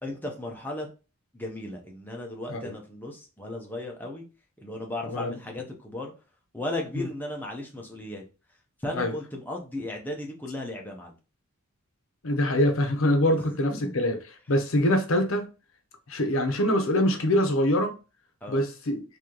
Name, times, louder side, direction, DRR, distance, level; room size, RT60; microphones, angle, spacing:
voice 1, 0.0-0.9 1.3-4.2 4.6-6.1 6.5-8.2 8.8-11.1 13.7-13.9 18.4-18.6, left 1 dB, 10° left, 0.7 m, -35 dB
voice 2, 12.2-14.2 14.5-15.5 16.1-17.9 18.5-19.0, left 1 dB, 65° left, 0.7 m, -24 dB
3.0 x 2.7 x 3.8 m
head